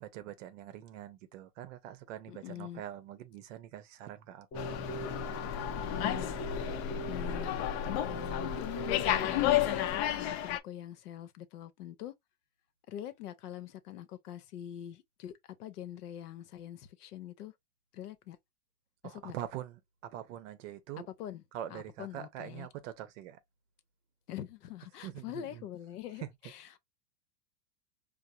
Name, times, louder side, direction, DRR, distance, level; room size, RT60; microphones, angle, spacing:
voice 1, 0.0-4.7 19.0-21.1 21.5-23.4 25.0-25.6 26.2-26.3, right 11 dB, 50° right, 0.7 m, -44 dB
voice 2, 2.3-2.8 5.7-6.4 7.1-7.6 8.0-12.1 12.9-15.3 15.6-17.5 17.9-18.4 19.0-19.3 21.0-21.4 21.7-22.7 24.3-26.8, left 11 dB, 70° left, 0.8 m, -44 dB
Slam, 4.5-10.6, left 12 dB, 40° left, 0.5 m, -32 dB
Keyboard (musical), 4.5-9.9, right 2 dB, 25° left, 1.1 m, -42 dB
4.6 x 2.0 x 2.6 m
hypercardioid pair, 125°, 48 cm